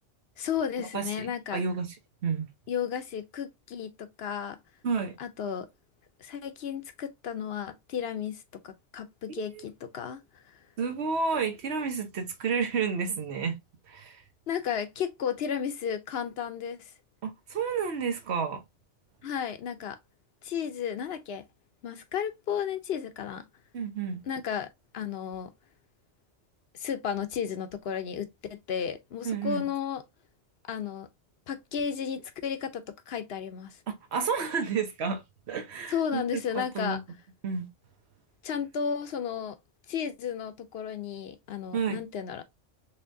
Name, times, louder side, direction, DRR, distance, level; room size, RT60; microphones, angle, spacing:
voice 1, 0.4-1.6 2.7-4.6 5.2-5.7 6.2-10.6 14.5-16.9 19.2-20.0 20.4-21.4 21.8-23.5 24.3-25.5 26.7-30.0 30.7-31.1 31.5-33.8 35.9-37.0 38.4-39.6 39.9-42.4, left 8 dB, 65° left, 0.8 m, -33 dB
voice 2, 0.9-1.9 2.2-2.5 4.8-5.2 9.4-9.6 10.8-13.6 13.9-14.2 17.2-18.6 23.7-24.2 29.2-29.7 33.9-37.0 37.4-37.7 41.7-42.0, right 5 dB, 65° right, 1.2 m, -31 dB
4.3 x 3.4 x 2.6 m
omnidirectional pair, 1.2 m